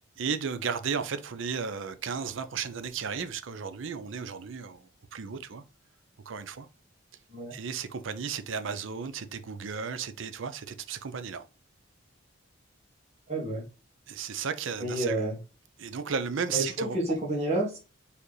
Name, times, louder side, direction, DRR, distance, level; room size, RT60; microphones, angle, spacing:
voice 1, 0.2-5.6 6.3-6.7 7.5-11.4 14.1-15.2 15.8-17.0, right 6 dB, 60° right, 0.5 m, -34 dB
voice 2, 13.3-13.7 14.8-15.4 16.5-17.8, right 1 dB, 30° right, 1.7 m, -29 dB
4.6 x 3.4 x 3.1 m
head